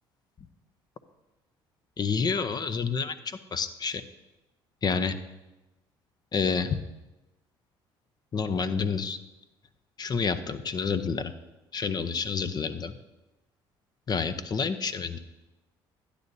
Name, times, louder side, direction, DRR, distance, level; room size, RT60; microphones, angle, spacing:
voice 1, 2.0-4.0 4.8-5.1 6.3-6.8 8.3-9.2 10.0-11.3 11.7-13.0 14.1-15.2, left 5 dB, 40° left, 12 dB, 0.7 m, -29 dB
12.0 x 9.8 x 2.7 m, 1.1 s
supercardioid pair, 75°, 11 cm